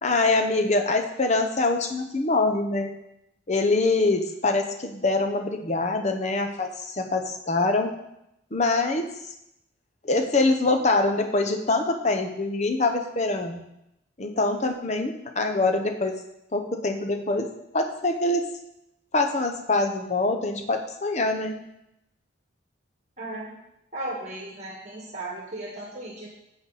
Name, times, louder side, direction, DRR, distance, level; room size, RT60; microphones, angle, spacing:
voice 1, 0.0-2.9 3.5-7.9 8.5-9.1 10.0-13.6 14.2-16.1 16.5-18.5 19.1-21.6, left 2 dB, 35° left, 6 dB, 0.9 m, -24 dB
voice 2, 23.2-23.5 23.9-26.3, right 1 dB, 35° right, -2 dB, 1.7 m, -35 dB
10.5 x 7.9 x 4.1 m, 0.83 s
head